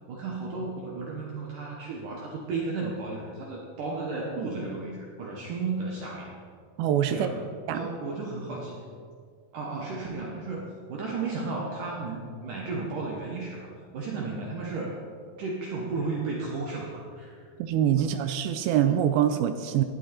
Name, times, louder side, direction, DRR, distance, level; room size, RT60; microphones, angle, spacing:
voice 1, 0.1-6.3 7.1-7.5 7.7-8.9 9.5-15.0 15.4-17.5 18.0-18.1, right 3 dB, 65° right, -2 dB, 2.3 m, -34 dB
voice 2, 6.8-7.3 7.7-7.8 17.6-19.8, right 10 dB, 85° right, 8 dB, 2.1 m, -24 dB
16.5 x 11.0 x 4.4 m, 2.1 s
omnidirectional pair, 5.0 m